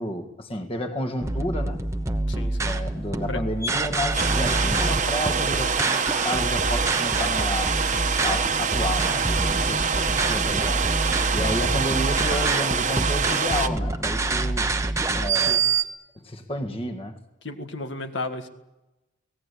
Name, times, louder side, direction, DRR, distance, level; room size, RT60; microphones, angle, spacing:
voice 1, 0.0-1.8 2.6-7.7 8.2-9.7 9.9-10.9 11.3-14.7 15.1-15.6 16.1-17.2, left 1 dB, 30° left, 6 dB, 1.7 m, -31 dB
sound 1, 1.2-15.8, right 2 dB, 15° right, 1.0 m, -26 dB
voice 2, 2.3-2.7 3.3-3.4 9.6-9.8 15.5-15.6 17.4-18.5, left 2 dB, 70° left, 6 dB, 1.8 m, -33 dB
sound 2, 4.1-13.7, right 6 dB, 40° right, 1.2 m, -25 dB
24.5 x 18.0 x 8.5 m, 0.99 s
head